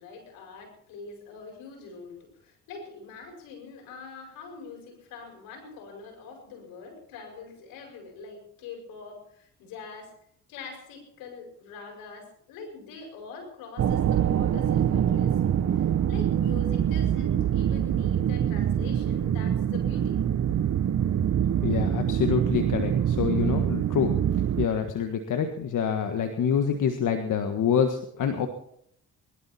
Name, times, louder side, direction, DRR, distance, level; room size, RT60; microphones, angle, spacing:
voice 1, 0.0-10.2 10.5-20.2 20.5-20.6, left 4 dB, 85° left, 3 dB, 5.5 m, -44 dB
sound 1, 13.8-24.7, right 9 dB, 50° right, 0.9 m, -25 dB
voice 2, 21.6-24.1 24.6-28.5, left 7 dB, 65° left, 6 dB, 1.6 m, -26 dB
22.0 x 12.0 x 4.3 m, 0.69 s
supercardioid pair, 65°, 33 cm